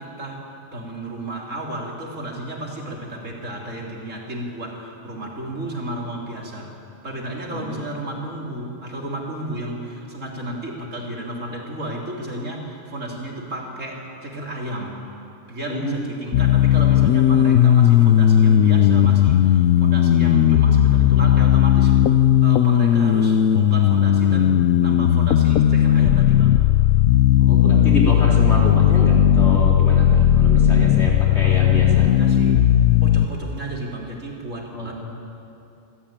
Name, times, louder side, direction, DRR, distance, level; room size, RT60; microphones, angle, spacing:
voice 1, 0.0-6.7 7.0-15.0 15.5-22.0 22.4-26.6 31.4-32.7 33.0-34.9, right 1 dB, 65° right, -1 dB, 3.6 m, -32 dB
voice 2, 7.5-7.8 15.7-16.1 27.4-32.1 34.7-34.9, equal, 55° left, -3 dB, 4.2 m, -27 dB
sound 1, 16.3-33.3, left 10 dB, 75° left, 1.0 m, -16 dB
27.0 x 14.0 x 8.9 m, 2.8 s
omnidirectional pair, 1.4 m